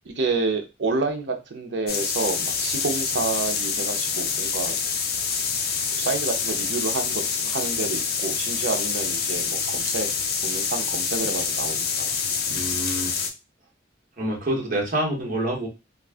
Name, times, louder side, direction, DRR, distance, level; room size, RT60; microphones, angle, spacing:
voice 1, 0.2-4.7 6.0-10.1 10.4-12.1, right 3 dB, 65° right, 5 dB, 0.6 m, -29 dB
sound 1, 1.9-13.3, left 6 dB, 55° left, 0.4 m, -26 dB
voice 2, 12.5-13.2 14.2-15.7, right 1 dB, 45° right, -1 dB, 1.0 m, -27 dB
2.4 x 2.3 x 3.3 m, 0.26 s
head